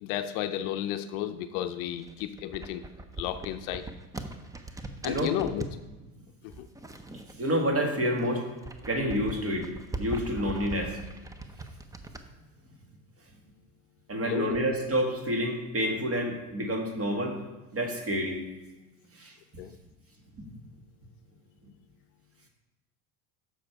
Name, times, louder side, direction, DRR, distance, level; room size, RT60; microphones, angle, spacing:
voice 1, 0.0-2.8 3.2-3.9 5.0-5.7 6.4-6.7 14.2-14.7 19.6-19.8, left 11 dB, 60° left, 10 dB, 0.6 m, -33 dB
sound 1, 1.9-5.8 6.5-7.8 8.1-12.2, right 2 dB, 10° right, 0.5 m, -41 dB
voice 2, 7.4-8.5 8.9-9.7 10.0-11.0 14.1-17.4 17.7-18.4 19.2-19.3 20.4-20.5, equal, 30° right, 3 dB, 1.8 m, -28 dB
6.5 x 6.4 x 4.6 m, 1.1 s
hypercardioid pair, 85°, 43 cm